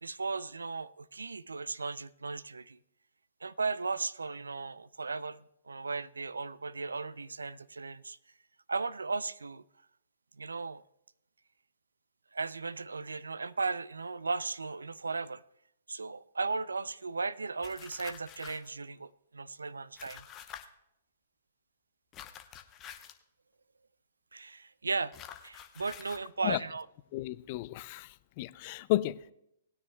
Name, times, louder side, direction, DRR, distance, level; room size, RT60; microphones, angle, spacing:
voice 1, 0.0-2.8 3.4-8.2 8.7-9.6 10.4-10.8 12.3-15.4 15.9-20.3 24.3-25.1 25.4-26.9, right 4 dB, 85° right, 0.4 m, -36 dB
sound 1, 17.6-18.7 20.0-20.6 22.1-23.2 25.1-26.2, left 10 dB, 25° left, 0.9 m, -48 dB
voice 2, 27.1-28.1 28.4-29.3, left 16 dB, 40° left, 0.4 m, -32 dB
19.5 x 9.7 x 2.3 m
figure-of-eight pair, 120°, 0 cm